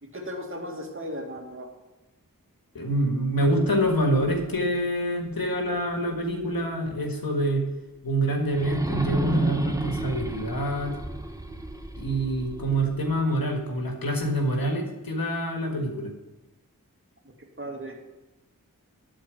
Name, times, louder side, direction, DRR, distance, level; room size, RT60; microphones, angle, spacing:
voice 1, 0.0-1.7 17.6-18.0, equal, 35° right, 0 dB, 2.3 m, -36 dB
voice 2, 2.8-7.6 8.0-11.0 12.0-16.1, right 1 dB, 90° left, 2 dB, 1.8 m, -26 dB
sound 1, 3.6-6.5 7.0-7.1 8.5-13.5, right 1 dB, 10° right, 1.0 m, -33 dB
12.0 x 4.4 x 8.3 m, 1.1 s
wide cardioid pair, 50°, 34 cm